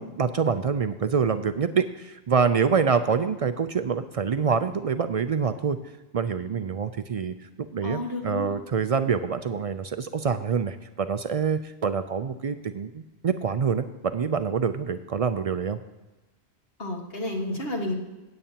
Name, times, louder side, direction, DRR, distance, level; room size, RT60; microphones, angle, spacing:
voice 1, 0.0-5.8 6.1-7.3 7.7-15.8, right 6 dB, 55° right, 10 dB, 0.4 m, -26 dB
voice 2, 7.8-8.5 16.8-17.9, left 1 dB, 65° left, 0 dB, 1.9 m, -31 dB
16.0 x 8.9 x 2.8 m, 1.1 s
omnidirectional pair, 1.1 m